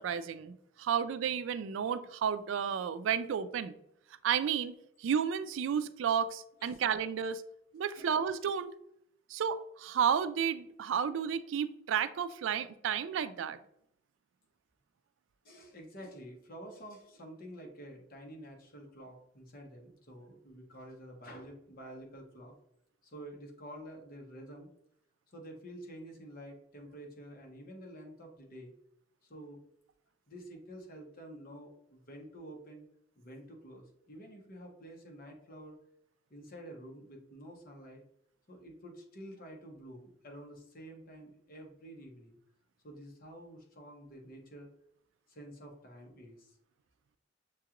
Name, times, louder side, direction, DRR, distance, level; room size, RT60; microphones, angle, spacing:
voice 1, 0.0-3.7 4.2-7.4 7.7-8.7 9.3-13.6, right 7 dB, 90° right, 14 dB, 0.3 m, -32 dB
voice 2, 15.4-22.5 23.0-24.7 25.3-28.7 29.2-29.6 30.3-32.9 33.2-35.8 36.3-38.0 38.5-42.4 42.8-44.7 45.3-46.6, right 1 dB, 50° left, 1 dB, 1.1 m, -49 dB
6.5 x 2.4 x 2.9 m, 0.74 s
head